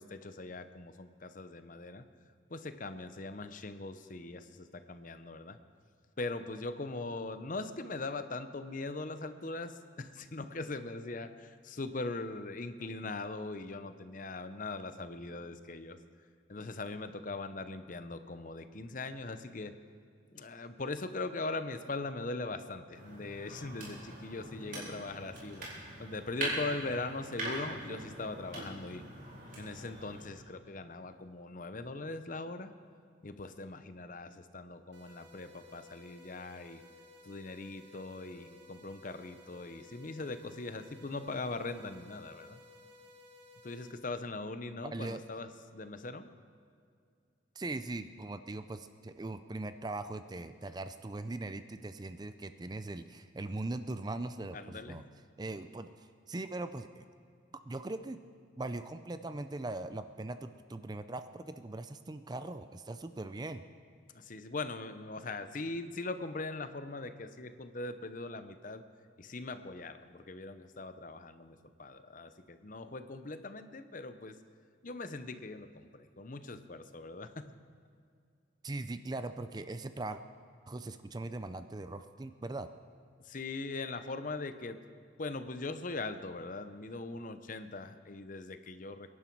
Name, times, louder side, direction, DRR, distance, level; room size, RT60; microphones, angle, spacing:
voice 1, 0.0-2.1 2.5-5.6 6.2-16.0 16.5-19.8 20.3-25.7 26.0-29.0 29.6-32.7 33.2-36.8 37.2-42.6 43.6-46.3 54.5-55.1 64.1-68.8 69.2-74.4 74.8-77.5 83.2-84.8 85.2-89.1, left 3 dB, 45° left, 10 dB, 0.7 m, -41 dB
sound 1, 22.9-30.3, right 1 dB, 45° right, 4.2 m, -42 dB
sound 2, 34.9-43.9, left 2 dB, 65° right, 1.6 m, -57 dB
voice 2, 47.6-55.0 55.4-55.9 56.3-57.0 57.7-58.2 58.6-63.6 78.6-80.2 80.7-82.7, right 2 dB, 20° right, 10 dB, 0.4 m, -40 dB
23.5 x 11.0 x 4.6 m, 2.3 s
head